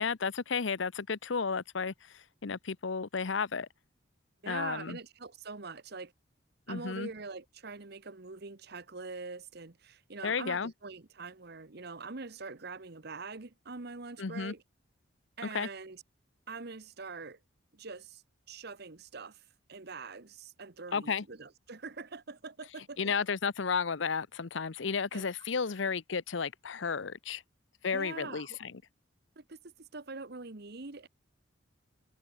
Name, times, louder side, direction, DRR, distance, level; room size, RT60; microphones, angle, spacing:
voice 1, 0.0-3.7 4.5-5.0 6.7-7.1 10.2-10.7 14.2-14.5 15.5-15.7 20.9-21.2 23.0-27.4 27.8-28.7, left 5 dB, 70° left, 0.7 m, -33 dB
voice 2, 4.4-6.1 6.7-14.6 15.4-16.0 16.5-17.4 17.7-18.2 18.5-23.1 25.1-25.2 25.8-25.9 27.9-28.6 29.4-31.1, right 4 dB, 55° right, 1.2 m, -44 dB
head